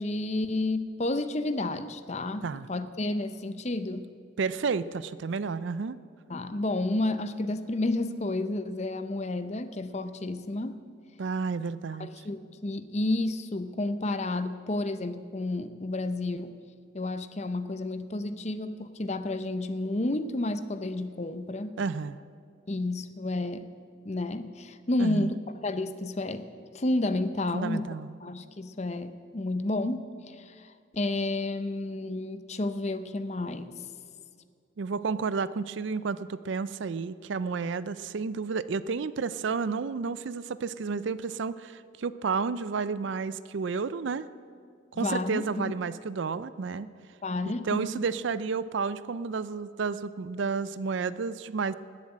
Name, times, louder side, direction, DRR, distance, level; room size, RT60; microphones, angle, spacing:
voice 1, 0.0-4.1 6.3-10.8 12.0-16.6 16.9-21.8 22.7-23.7 24.0-26.5 26.7-27.9 28.2-33.8 44.9-45.7 47.2-48.0, left 2 dB, 35° left, 11 dB, 0.6 m, -31 dB
voice 2, 4.4-6.0 11.2-12.3 21.8-22.2 25.0-25.3 27.5-28.2 34.8-44.3 44.9-46.9 47.6-51.7, right 5 dB, 65° right, 16 dB, 0.4 m, -31 dB
19.5 x 7.4 x 8.9 m, 2.2 s
head